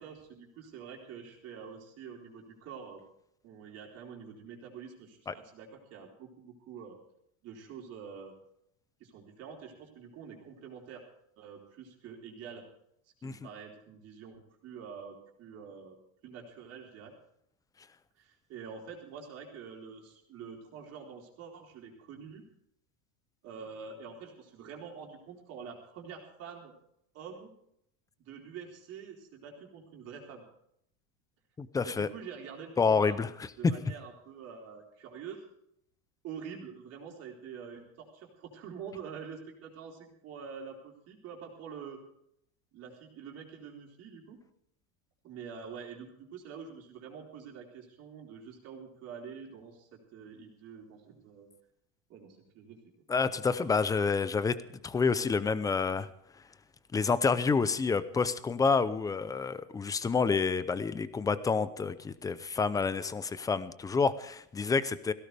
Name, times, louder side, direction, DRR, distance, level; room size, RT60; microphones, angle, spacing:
voice 1, 0.0-3.0 3.4-7.0 7.4-8.3 9.0-11.0 11.4-12.6 13.0-16.0 16.2-17.1 18.2-22.4 23.4-26.7 27.1-27.5 28.2-30.4 31.8-33.2 33.6-35.4 36.2-42.0 42.7-44.4 45.2-51.5 52.1-52.8, right 6 dB, 40° right, 0 dB, 4.2 m, -46 dB
voice 2, 31.6-32.1 32.8-33.3 53.1-54.6 54.8-56.1 56.9-65.1, left 5 dB, 10° left, 14 dB, 0.5 m, -28 dB
18.0 x 16.5 x 3.4 m, 0.73 s
cardioid pair, 160°, 39 cm